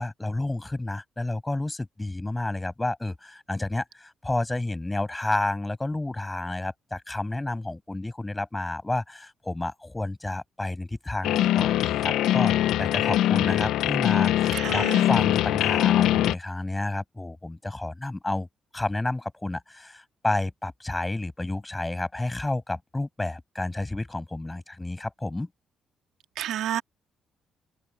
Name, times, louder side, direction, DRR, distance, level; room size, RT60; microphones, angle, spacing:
voice 1, 0.0-12.5 12.8-18.5 18.7-25.5, left 2 dB, 15° left, 7.2 m, -30 dB
sound 1, 11.2-16.3, left 13 dB, 85° left, 0.3 m, -22 dB
voice 2, 14.5-15.1 26.4-26.8, right 11 dB, 80° right, 1.8 m, -30 dB
cardioid pair, 90°, 0 cm